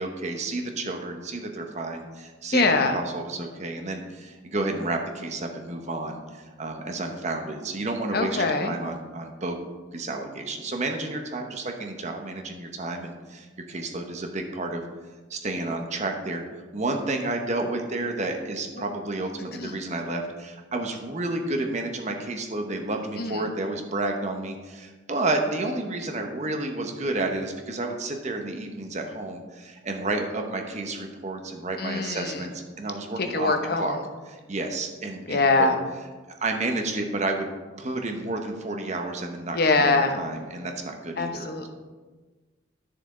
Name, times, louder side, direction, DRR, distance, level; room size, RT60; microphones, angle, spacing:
voice 1, 0.0-2.6 2.9-9.6 9.9-14.8 15.3-16.4 16.7-33.5 33.8-34.0 34.3-35.7 36.4-37.5 37.8-41.7, right 2 dB, 35° right, 3 dB, 1.0 m, -31 dB
voice 2, 2.5-3.0 8.1-8.7 18.7-18.8 19.5-19.8 23.2-23.6 31.8-32.5 33.1-34.0 35.3-35.8 39.5-40.2 41.2-41.7, left 3 dB, 50° left, 5 dB, 0.9 m, -23 dB
11.0 x 6.9 x 3.8 m, 1.3 s
head